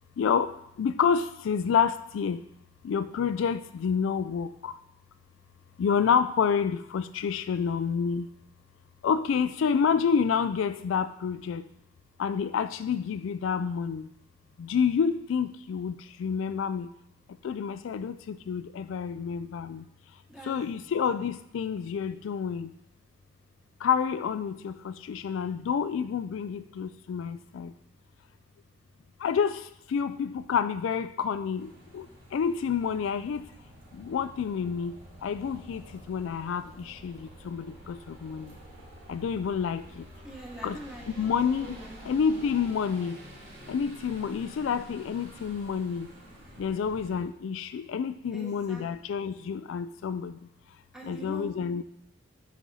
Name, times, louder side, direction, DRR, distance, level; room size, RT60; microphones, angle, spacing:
voice 1, 0.2-0.5 0.8-2.4 2.8-4.7 5.8-8.3 9.0-11.6 12.2-14.1 14.6-15.9 16.2-16.9 17.4-19.8 20.5-22.7 23.8-27.7 29.2-29.6 29.9-32.1 32.3-33.4 34.0-35.0 35.2-35.8 36.1-37.1 37.5-38.5 39.1-39.8 40.6-40.8 41.2-41.8 42.1-43.2 43.7-46.1 46.6-50.3 51.1-51.8, left 6 dB, 75° left, 12 dB, 0.3 m, -28 dB
voice 2, 20.3-20.8 40.2-41.3 41.6-42.0 48.3-48.8 50.9-51.5, right 1 dB, 5° right, -2 dB, 1.2 m, -44 dB
sound 1, 31.5-47.3, equal, 60° right, 2.5 m, -49 dB
7.4 x 5.0 x 4.1 m, 0.77 s
head